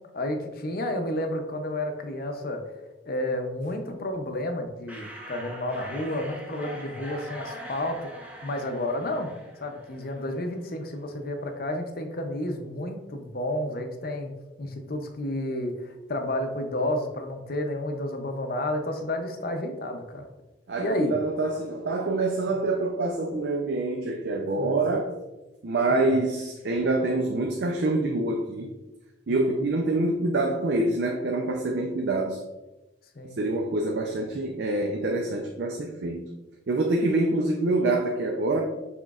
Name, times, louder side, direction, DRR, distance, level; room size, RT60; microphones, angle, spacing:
voice 1, 0.1-2.6 3.1-8.0 8.4-9.3 9.6-14.3 14.6-20.2 20.8-21.1 24.6-24.7 29.3-29.6 33.2-33.4, left 1 dB, 50° left, 5 dB, 0.6 m, -31 dB
sound 1, 4.9-10.4, equal, 10° right, 0.6 m, -42 dB
voice 2, 20.7-25.1 25.6-28.7 29.3-32.4 33.4-36.3 36.7-38.6, right 2 dB, 55° right, 2 dB, 0.4 m, -26 dB
5.9 x 3.8 x 2.4 m, 1.1 s
head